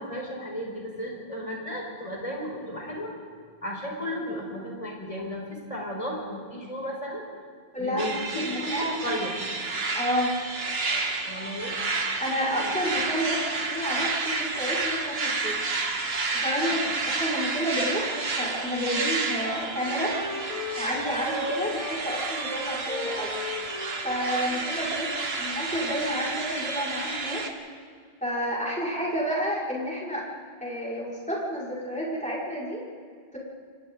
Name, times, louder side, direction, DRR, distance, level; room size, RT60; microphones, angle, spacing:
voice 1, 0.0-3.1 3.6-5.4 5.7-7.2 7.8-9.4 11.3-11.8 12.6-12.7, equal, 35° left, -2 dB, 5.1 m, -34 dB
voice 2, 7.7-8.9 9.9-10.3 12.2-15.7 16.3-20.1 20.8-23.3 24.0-27.4 28.2-30.2 30.6-32.8 33.3-33.4, equal, 5° left, -6 dB, 5.8 m, -30 dB
sound 1, 8.0-27.5, right 3 dB, 75° right, 1.8 m, -30 dB
Wind instrument woodwind instrument, 18.9-25.3, left 2 dB, 80° left, 3.8 m, -37 dB
29.0 x 24.0 x 4.0 m, 2.1 s
omnidirectional pair, 1.0 m